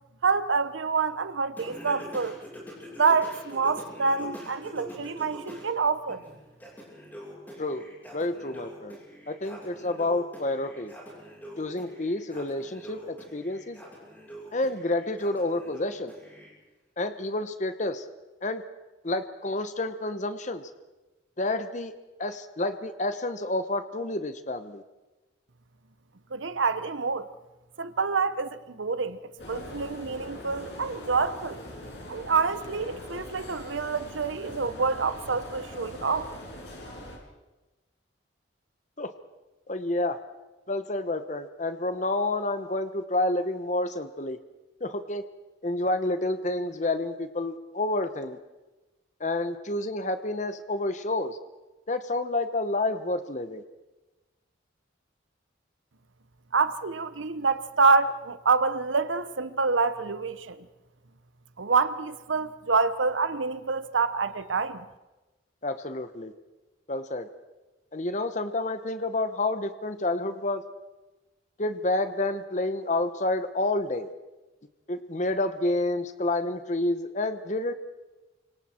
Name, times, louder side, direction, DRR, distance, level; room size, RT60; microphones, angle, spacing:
voice 1, 0.2-2.4 3.0-6.2 26.3-27.3 27.8-31.6 32.1-36.3 56.5-60.7 61.6-64.8, right 4 dB, 85° right, 1.0 m, -27 dB
Singing, 1.6-5.7 6.1-16.5, equal, 10° left, 7.6 m, -45 dB
voice 2, 8.1-9.0 9.3-10.9 11.6-13.8 14.5-16.1 17.0-18.0 18.4-18.6 19.0-20.7 21.4-21.9 22.2-24.8 39.0-39.1 39.7-40.2 40.7-44.4 44.8-45.2 45.6-48.4 49.2-51.4 51.9-53.6 65.6-66.3 66.9-67.3 67.9-70.6 71.6-74.1 74.9-77.7, left 2 dB, 40° left, 1.0 m, -29 dB
sound 1, 29.4-37.2, left 1 dB, 65° left, 6.1 m, -42 dB
29.5 x 25.5 x 4.5 m
head